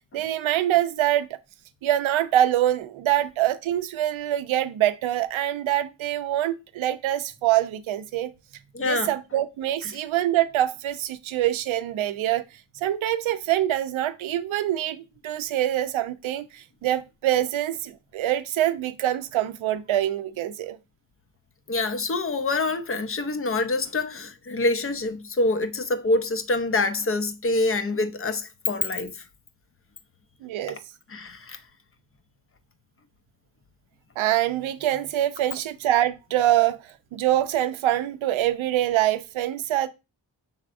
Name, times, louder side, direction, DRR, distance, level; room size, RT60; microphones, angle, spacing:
voice 1, 0.1-1.3 1.8-8.3 8.8-12.4 12.8-20.8 30.4-30.8 34.2-36.8 37.1-39.9, right 13 dB, 75° right, 0.6 m, -25 dB
voice 2, 8.7-9.1 21.7-29.1 31.1-31.6, left 2 dB, 30° left, 0.5 m, -26 dB
5.5 x 3.4 x 2.5 m
cardioid pair, 55°, 48 cm